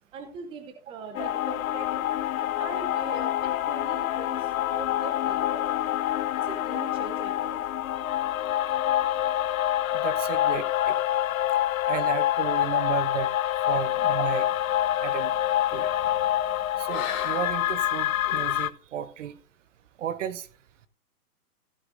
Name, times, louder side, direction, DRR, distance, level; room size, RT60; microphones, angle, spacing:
voice 1, 0.1-2.1 2.6-4.4 4.7-5.7 6.4-7.6, right 4 dB, 10° right, 0.7 m, -41 dB
sound 1, 1.1-18.7, left 13 dB, 65° left, 0.6 m, -26 dB
voice 2, 9.9-10.9 11.9-13.3 13.7-14.5 15.0-15.3 15.7-15.9 16.8-19.3 20.0-20.5, right 9 dB, 55° right, 0.9 m, -33 dB
sound 2, 13.7-18.6, left 8 dB, 25° left, 1.5 m, -43 dB
15.0 x 7.8 x 2.5 m
hypercardioid pair, 140°, 45 cm